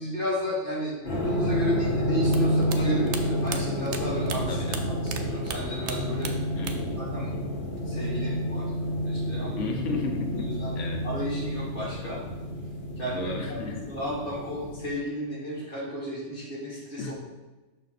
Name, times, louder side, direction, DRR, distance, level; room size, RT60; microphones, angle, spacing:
voice 1, 0.0-4.6 4.9-6.3 6.6-7.3 7.9-8.7 9.0-9.6 10.3-10.7 11.0-12.2 13.0-17.1, equal, 45° left, -6 dB, 2.7 m, -33 dB
sound 1, 1.0-15.0, equal, 60° left, 1.7 m, -29 dB
sound 2, 2.3-5.2 5.5-7.0 7.2-8.0, right 7 dB, 75° right, 0.9 m, -36 dB
voice 2, 4.5-4.9 6.6-7.0 7.3-7.4 9.6-10.5 10.8-11.0 13.2-13.8 17.0-17.1, left 3 dB, 75° left, 3 dB, 1.2 m, -33 dB
6.1 x 4.7 x 4.1 m, 1.1 s
omnidirectional pair, 1.3 m